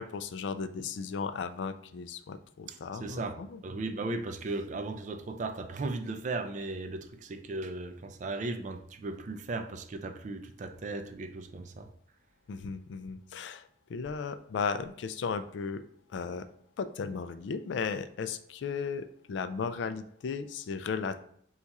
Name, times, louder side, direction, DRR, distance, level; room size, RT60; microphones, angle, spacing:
voice 1, 0.0-3.6 12.5-15.8 16.1-16.5 16.8-21.2, left 5 dB, 70° left, 0.3 m, -35 dB
voice 2, 3.0-3.4 3.6-11.9, right 2 dB, 40° right, 0.4 m, -36 dB
4.0 x 2.4 x 4.6 m
head